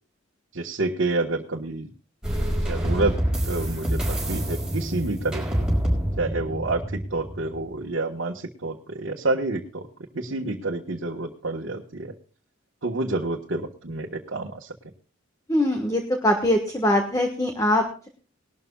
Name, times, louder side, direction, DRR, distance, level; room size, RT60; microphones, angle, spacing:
voice 1, 0.5-1.9 2.6-3.2 3.5-5.7 6.2-9.9 10.1-12.1 12.8-14.7, right 2 dB, 75° right, -2 dB, 1.5 m, -28 dB
sound 1, 2.2-7.7, equal, 5° right, 5.4 m, -26 dB
voice 2, 15.5-18.1, left 1 dB, 15° left, 4 dB, 1.5 m, -22 dB
20.0 x 12.5 x 2.4 m, 0.39 s
head